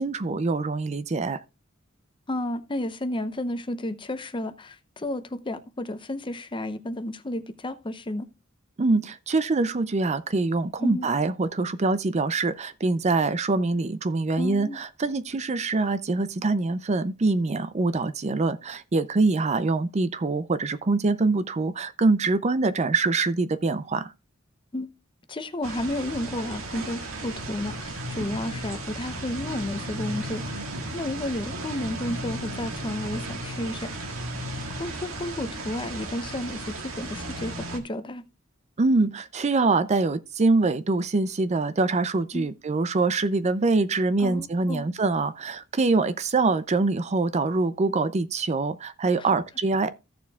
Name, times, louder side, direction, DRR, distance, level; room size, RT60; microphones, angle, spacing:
voice 1, 0.0-1.4 8.8-24.1 38.8-49.9, right 3 dB, 35° right, 0.5 m, -24 dB
voice 2, 2.3-8.3 10.8-11.1 14.4-14.8 24.7-24.9 25.3-30.7 30.9-34.1 34.7-38.2 42.3-42.5 44.2-44.9 49.2-49.3, left 1 dB, 25° left, 0.7 m, -32 dB
sound 1, 25.6-37.8, right 1 dB, 90° right, 1.6 m, -35 dB
15.0 x 6.9 x 2.3 m
head